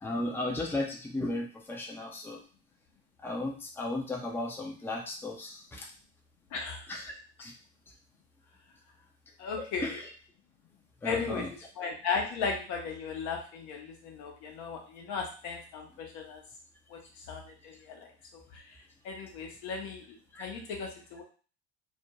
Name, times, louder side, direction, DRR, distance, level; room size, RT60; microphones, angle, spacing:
voice 1, 0.0-2.4 3.2-5.9 6.9-7.1 7.4-7.5 9.6-10.0 11.0-11.5 20.3-20.4, left 2 dB, 5° left, 0 dB, 0.6 m, -35 dB
voice 2, 6.5-6.9 9.4-10.0 11.0-16.4 16.9-17.0 17.3-21.2, left 5 dB, 60° left, 1 dB, 0.9 m, -36 dB
2.6 x 2.2 x 2.9 m, 0.39 s
hypercardioid pair, 65°, 34 cm